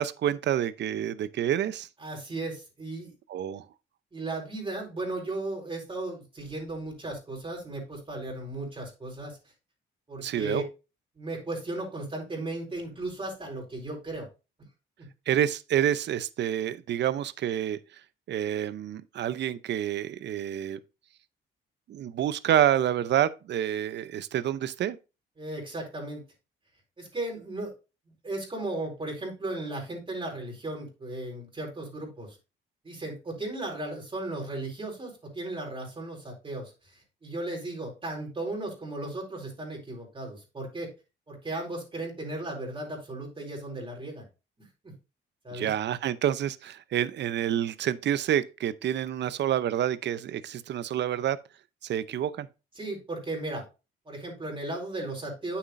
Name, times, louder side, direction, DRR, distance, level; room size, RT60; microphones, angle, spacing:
voice 1, 0.0-1.9 3.3-3.7 10.2-10.6 15.3-17.8 18.3-20.8 21.9-25.0 45.5-51.4 51.8-52.5, right 10 dB, 60° right, 0.6 m, -28 dB
voice 2, 2.0-3.1 4.1-9.4 10.1-10.6 11.2-14.3 15.0-15.1 25.4-26.2 27.0-27.7 28.2-32.4 32.8-40.9 41.3-44.3 44.6-44.9 45.4-45.7 52.8-53.6 54.1-55.6, right 2 dB, 25° right, 4.1 m, -36 dB
9.0 x 7.2 x 2.6 m
cardioid pair, 90°, 20 cm